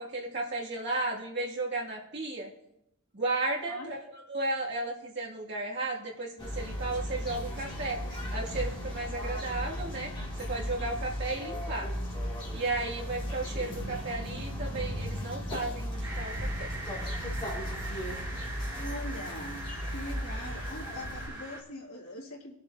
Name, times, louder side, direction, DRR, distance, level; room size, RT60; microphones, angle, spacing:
voice 1, 0.0-2.5 3.1-4.0 4.3-8.0 8.3-10.1 10.4-11.9 12.5-16.7, right 2 dB, 50° right, -4 dB, 2.6 m, -34 dB
sound 1, 6.4-21.3, equal, 25° left, 2.7 m, -36 dB
sound 2, 16.0-21.6, right 1 dB, 15° right, 1.8 m, -42 dB
voice 2, 18.6-22.5, left 1 dB, 85° left, -2 dB, 2.8 m, -42 dB
21.0 x 7.4 x 2.9 m, 0.80 s
head